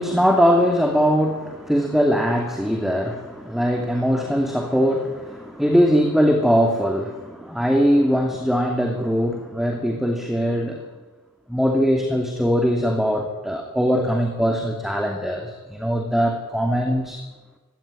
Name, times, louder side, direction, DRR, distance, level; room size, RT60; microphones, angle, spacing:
voice 1, 0.0-10.8 11.5-17.2, equal, ahead, 3 dB, 2.6 m, -21 dB
25.0 x 17.5 x 9.9 m, 1.2 s
head